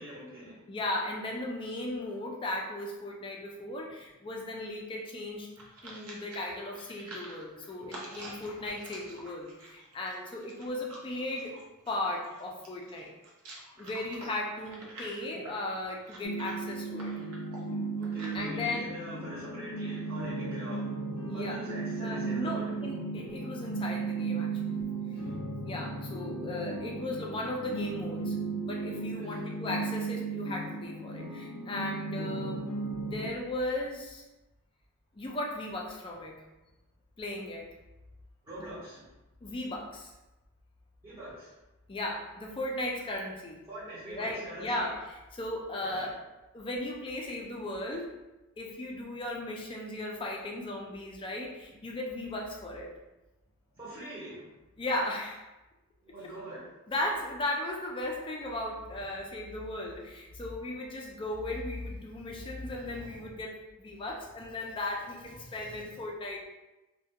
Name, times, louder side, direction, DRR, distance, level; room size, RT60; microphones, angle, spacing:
voice 1, 0.0-0.6 18.0-21.0 21.3-22.7 24.9-25.3 26.4-26.5 29.2-29.4 38.4-39.1 41.0-41.6 43.7-44.9 45.8-46.1 53.7-54.5 56.0-56.6, right 1 dB, 20° right, -10 dB, 0.7 m, -43 dB
voice 2, 0.7-5.5 5.8-11.6 11.9-13.1 13.8-17.1 18.3-18.9 21.3-24.6 25.6-32.7 33.0-34.2 35.2-36.3 37.2-37.7 39.4-40.1 41.9-43.6 44.1-46.2 46.5-48.1 48.6-52.9 54.8-55.4 56.9-66.5, left 1 dB, 20° left, -1 dB, 0.3 m, -36 dB
sound 1, 5.3-18.4, right 1 dB, 70° right, 0.6 m, -48 dB
sound 2, 16.2-33.3, right 3 dB, 80° left, 0.5 m, -35 dB
2.3 x 2.2 x 2.7 m, 1.0 s
head